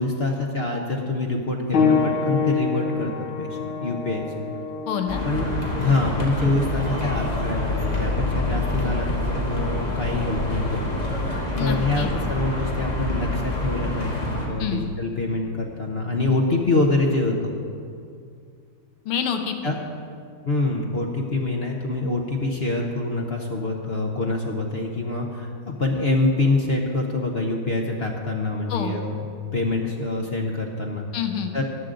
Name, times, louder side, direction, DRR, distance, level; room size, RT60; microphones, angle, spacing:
voice 1, 0.0-3.1 3.4-4.2 5.2-5.5 5.8-11.1 11.6-17.6 19.6-19.8 20.5-29.2 29.5-31.1 31.5-31.6, left 2 dB, 50° left, 1 dB, 0.7 m, -25 dB
sound 1, 1.7-12.0 12.9-13.0 13.8-13.9, left 5 dB, 70° left, 2.0 m, -29 dB
voice 2, 4.9-5.2 11.6-12.1 14.6-14.9 19.1-19.7 28.7-28.9 31.1-31.6, left 8 dB, 90° left, 6 dB, 1.8 m, -27 dB
sound 2, 5.1-14.5, left 1 dB, 20° left, 1.7 m, -26 dB
14.0 x 11.0 x 3.9 m, 2.3 s
omnidirectional pair, 2.3 m